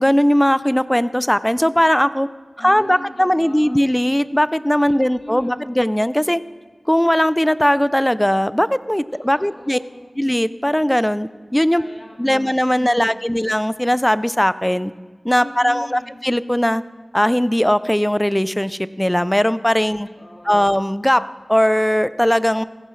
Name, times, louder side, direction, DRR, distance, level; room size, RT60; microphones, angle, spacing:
voice 1, 0.0-2.3 2.6-6.4 6.9-9.8 10.2-11.8 12.2-14.9 15.2-16.8 17.1-20.1 20.4-22.6, equal, 10° left, 15 dB, 0.4 m, -18 dB
voice 2, 2.6-4.0 4.8-5.8 9.1-10.2 11.8-13.4 15.4-16.2 20.1-20.7, left 1 dB, 25° left, 1 dB, 2.2 m, -40 dB
15.5 x 15.0 x 3.2 m, 1.4 s
wide cardioid pair, 45°, 0 cm